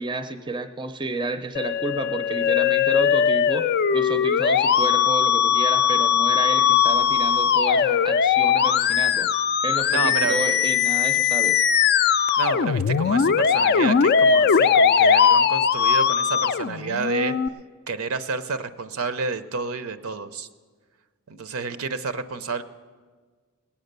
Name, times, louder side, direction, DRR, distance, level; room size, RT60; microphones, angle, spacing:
voice 1, 0.0-3.7 3.9-9.3 9.6-11.7, right 2 dB, 20° right, 9 dB, 0.5 m, -31 dB
Musical instrument, 1.5-17.5, left 7 dB, 45° left, 0.3 m, -20 dB
voice 2, 9.9-10.4 12.4-17.4 17.9-20.5 21.3-22.6, right 4 dB, 70° right, 12 dB, 0.6 m, -29 dB
18.5 x 8.7 x 6.6 m, 1.5 s
head